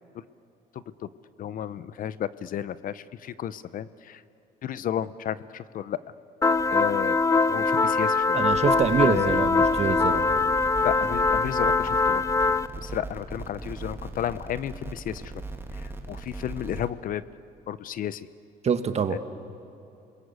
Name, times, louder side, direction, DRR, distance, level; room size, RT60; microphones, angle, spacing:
voice 1, 0.7-1.1 1.4-4.2 4.6-6.0 6.7-7.2 7.5-8.4 9.0-9.4 10.8-12.2 12.8-15.3 15.7-17.2 17.7-18.3 19.1-19.2, left 10 dB, 55° left, 16 dB, 0.8 m, -32 dB
sound 1, 6.4-12.7, left 3 dB, 20° left, 0.6 m, -23 dB
voice 2, 8.3-10.2 18.6-19.2, right 6 dB, 40° right, 9 dB, 1.7 m, -25 dB
sound 2, 8.5-16.9, right 2 dB, 15° right, 2.3 m, -39 dB
28.0 x 21.5 x 8.3 m, 2.8 s
cardioid pair, 110°, 17 cm